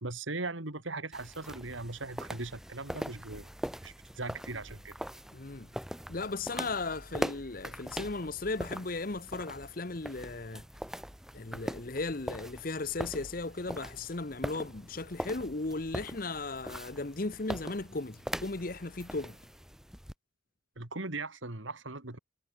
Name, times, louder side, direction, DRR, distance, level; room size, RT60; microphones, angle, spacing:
voice 1, 0.0-3.5 3.8-4.9 20.8-22.2, right 3 dB, 75° right, 2.7 m, -39 dB
sound 1, 1.1-20.1, equal, ahead, 1.8 m, -41 dB
voice 2, 5.3-5.7 6.1-10.6 11.3-19.4, left 3 dB, 45° left, 1.0 m, -36 dB
head